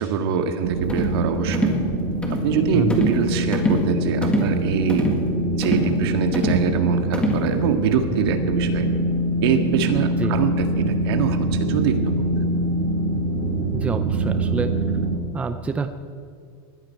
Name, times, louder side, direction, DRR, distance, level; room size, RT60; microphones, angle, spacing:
voice 1, 0.0-1.8 2.3-5.1 5.5-8.9 9.4-12.3, right 7 dB, 70° right, 6 dB, 1.9 m, -24 dB
sound 1, 0.6-15.2, right 1 dB, 85° right, 5.0 m, -24 dB
sound 2, 0.9-1.2 1.5-1.8 2.2-2.5 2.9-3.2 3.5-3.9 4.2-4.5 4.9-5.2 5.6-5.9 6.3-6.7 7.1-7.5, left 1 dB, 10° left, 1.9 m, -24 dB
voice 2, 13.7-14.7 15.3-15.9, right 4 dB, 10° right, 9 dB, 0.5 m, -27 dB
20.0 x 14.0 x 4.6 m, 2.3 s
supercardioid pair, 160°, 13 cm